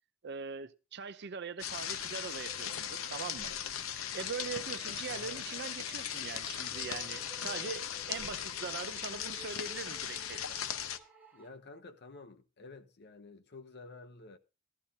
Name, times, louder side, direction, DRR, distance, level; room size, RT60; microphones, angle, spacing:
voice 1, 0.2-3.5 4.1-10.6, right 5 dB, 55° right, 0.7 m, -42 dB
sound 1, 1.6-11.0, left 9 dB, 85° left, 0.7 m, -38 dB
sound 2, 1.9-11.5, right 3 dB, 10° right, 2.7 m, -56 dB
voice 2, 11.3-14.4, left 3 dB, 55° left, 0.9 m, -51 dB
14.0 x 13.5 x 2.8 m
head